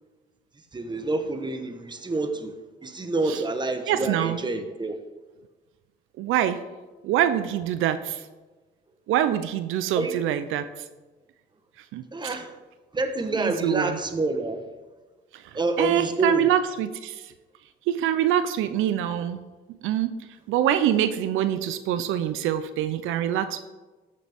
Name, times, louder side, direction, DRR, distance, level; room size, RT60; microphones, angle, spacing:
voice 1, 0.7-2.5 2.8-5.0 9.9-10.1 12.1-12.6 12.9-14.6 15.5-16.5, right 2 dB, 20° right, 8 dB, 1.1 m, -27 dB
voice 2, 3.9-4.4 6.2-6.6 7.0-8.2 9.1-10.6 11.9-12.4 13.3-14.0 15.3-15.4 15.8-17.3 17.9-19.4 19.8-20.1 20.5-23.6, right 11 dB, 90° right, 11 dB, 0.5 m, -25 dB
13.5 x 6.7 x 3.5 m, 1.2 s
cardioid pair, 90°, 20 cm